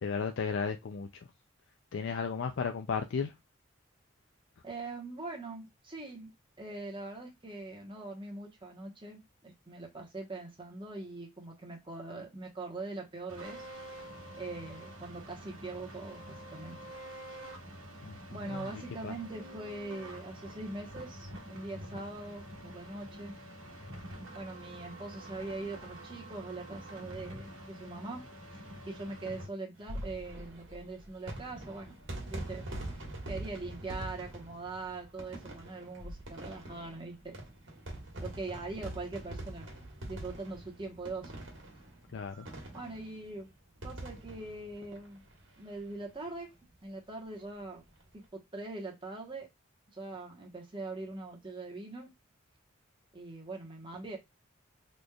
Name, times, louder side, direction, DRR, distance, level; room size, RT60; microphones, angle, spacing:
voice 1, 0.0-1.3 1.9-3.4 18.0-19.2 42.1-42.5, left 5 dB, 60° left, 0.4 m, -35 dB
voice 2, 4.6-6.3 6.6-13.6 14.4-16.8 18.3-23.3 24.3-32.0 32.3-32.6 33.3-37.4 38.2-39.7 40.1-41.3 42.7-43.5 43.8-45.3 45.6-46.5 46.8-47.8 48.1-49.5 49.9-52.1 53.1-54.2, right 2 dB, 25° right, 1.1 m, -42 dB
sound 1, 13.3-29.5, right 1 dB, 85° right, 1.2 m, -47 dB
sound 2, 29.7-45.8 46.1-46.2 46.4-46.5 47.8-48.0, right 1 dB, 60° right, 1.5 m, -44 dB
4.1 x 3.2 x 2.3 m
head